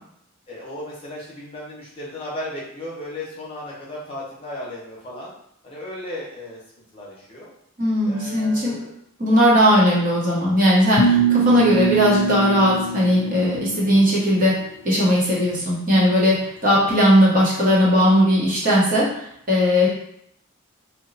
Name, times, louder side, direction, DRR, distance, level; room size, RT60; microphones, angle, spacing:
voice 1, 0.5-5.3 5.6-6.6 6.9-7.5 8.0-8.9 9.6-10.0, left 1 dB, 25° left, -6 dB, 0.8 m, -35 dB
voice 2, 7.8-8.8 9.2-14.6 14.8-19.9, equal, 40° right, -6 dB, 0.9 m, -18 dB
sound 1, 11.0-14.1, right 4 dB, 60° left, 0.4 m, -23 dB
2.8 x 2.2 x 3.9 m, 0.73 s
head